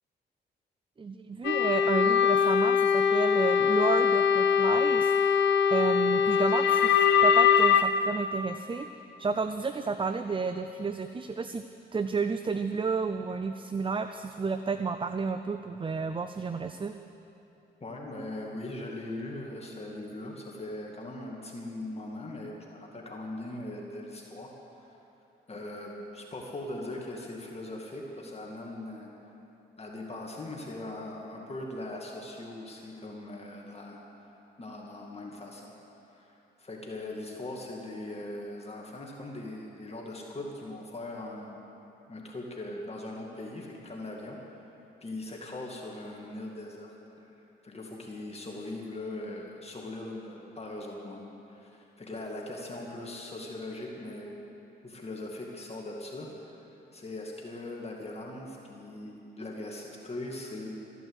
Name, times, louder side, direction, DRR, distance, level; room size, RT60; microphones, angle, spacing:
voice 1, 1.0-5.1 5.7-8.9 9.2-11.6 11.9-16.9, right 4 dB, 25° right, 9 dB, 0.5 m, -31 dB
sound 1, 1.4-7.8, left 7 dB, 90° left, 0.7 m, -22 dB
voice 2, 17.8-24.9 25.5-29.1 29.8-34.0 34.6-35.7 36.1-41.6 42.1-44.4 45.0-47.3 47.6-54.3 54.8-56.5 56.9-60.7, left 2 dB, 35° left, -1 dB, 2.3 m, -40 dB
14.5 x 11.0 x 8.1 m, 2.9 s
cardioid pair, 75°, 19 cm